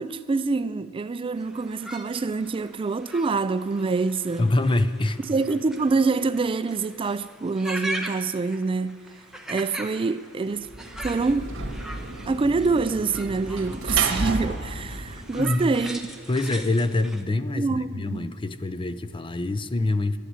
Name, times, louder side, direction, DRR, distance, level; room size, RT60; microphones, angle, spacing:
voice 1, 0.0-4.5 5.3-9.0 9.5-10.7 11.0-11.5 12.3-16.0 17.6-18.3, right 4 dB, 25° right, 0.3 m, -26 dB
sound 1, 1.3-17.2, right 1 dB, ahead, 1.1 m, -40 dB
voice 2, 4.4-5.2 15.3-15.6 16.3-20.2, left 2 dB, 25° left, 0.6 m, -25 dB
Sliding door / Slam, 10.6-16.0, right 2 dB, 65° right, 2.0 m, -32 dB
12.5 x 10.0 x 9.6 m
head